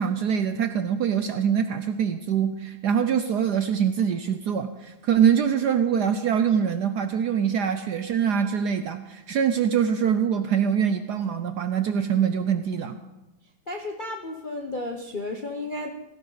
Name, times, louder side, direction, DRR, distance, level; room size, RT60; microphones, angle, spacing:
voice 1, 0.0-13.0, right 8 dB, 70° right, 9 dB, 1.0 m, -24 dB
voice 2, 13.7-15.9, left 2 dB, 45° left, 3 dB, 0.6 m, -33 dB
17.0 x 15.5 x 4.0 m, 1.1 s
omnidirectional pair, 2.3 m